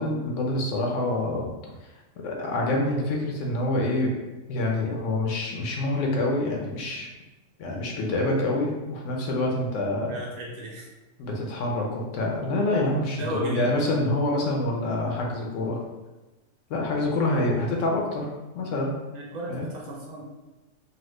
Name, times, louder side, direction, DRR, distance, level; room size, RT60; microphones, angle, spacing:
voice 1, 0.0-1.5 2.2-4.1 4.5-7.1 7.6-10.1 11.2-15.8 16.7-19.0 19.5-19.7, left 1 dB, 70° left, -1 dB, 0.8 m, -26 dB
voice 2, 10.1-10.9 13.2-13.7 19.1-20.2, right 1 dB, 50° right, -3 dB, 0.5 m, -34 dB
2.9 x 2.2 x 3.1 m, 1.1 s
omnidirectional pair, 1.5 m